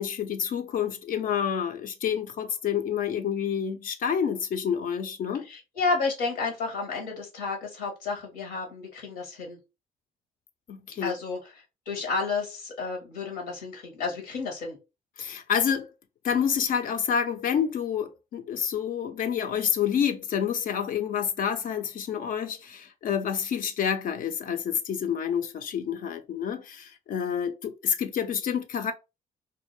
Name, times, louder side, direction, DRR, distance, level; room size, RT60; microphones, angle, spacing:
voice 1, 0.0-5.4 10.7-11.1 15.2-15.9 16.2-28.9, left 8 dB, 55° left, 0.4 m, -28 dB
voice 2, 5.4-9.6 11.0-11.4 11.9-14.8, left 4 dB, 90° left, 0.9 m, -31 dB
2.2 x 2.1 x 3.0 m
hypercardioid pair, 55°, 16 cm